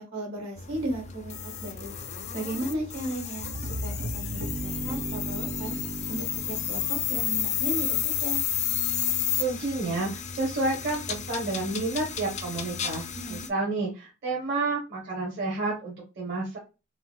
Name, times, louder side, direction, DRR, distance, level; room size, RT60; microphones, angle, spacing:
voice 1, 0.0-1.9 2.3-3.5 3.8-5.7 6.1-8.4 13.1-13.5, right 1 dB, 80° right, -1 dB, 1.6 m, -35 dB
sound 1, 0.6-13.5, left 9 dB, 35° left, 0.3 m, -32 dB
sound 2, 3.4-8.2, right 2 dB, 40° right, 0.4 m, -36 dB
voice 2, 9.4-13.0 13.3-16.6, right 2 dB, 60° right, -2 dB, 0.9 m, -30 dB
3.8 x 2.4 x 2.2 m, 0.29 s
head